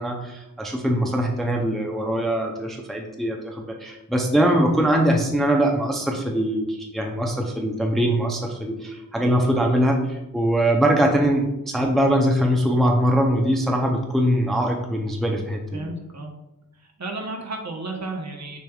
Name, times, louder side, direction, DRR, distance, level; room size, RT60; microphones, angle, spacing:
voice 1, 0.0-15.8, right 1 dB, ahead, 1 dB, 0.5 m, -22 dB
voice 2, 15.7-16.3 16.8-18.6, right 2 dB, 50° right, 1 dB, 0.9 m, -33 dB
6.6 x 3.3 x 2.3 m, 0.94 s
wide cardioid pair, 90°, 35 cm